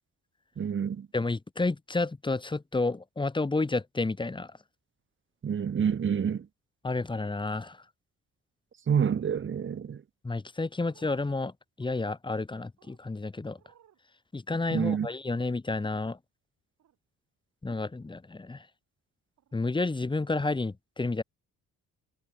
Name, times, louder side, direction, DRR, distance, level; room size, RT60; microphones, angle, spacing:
voice 1, 0.6-1.1 5.4-6.5 8.9-10.0 14.7-15.1, right 7 dB, 40° right, 1.4 m, -28 dB
voice 2, 1.1-4.5 6.8-7.8 10.2-11.5 11.8-13.6 14.3-16.2 17.6-18.6 19.5-21.2, left 3 dB, 15° left, 1.3 m, -30 dB
sound 1, 10.9-11.2 11.8-12.0 12.8-13.0 13.6-14.0 14.6-14.8 16.8-17.0 17.8-18.1 19.4-19.5 20.3-20.4, right 10 dB, 65° right, 7.7 m, -62 dB
cardioid pair, 90°, 30 cm